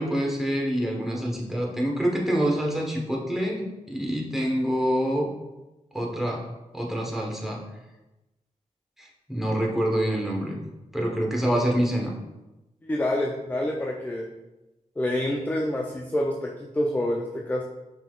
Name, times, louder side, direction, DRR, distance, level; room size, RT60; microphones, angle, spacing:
voice 1, 0.0-5.3 5.9-6.4 6.7-7.6 9.0-10.6 10.9-12.1, equal, ahead, -2 dB, 1.1 m, -26 dB
voice 2, 12.8-14.3 15.0-17.6, left 1 dB, 15° left, 1 dB, 0.4 m, -27 dB
5.6 x 3.6 x 2.4 m, 1.0 s
cardioid pair, 70°, 14 cm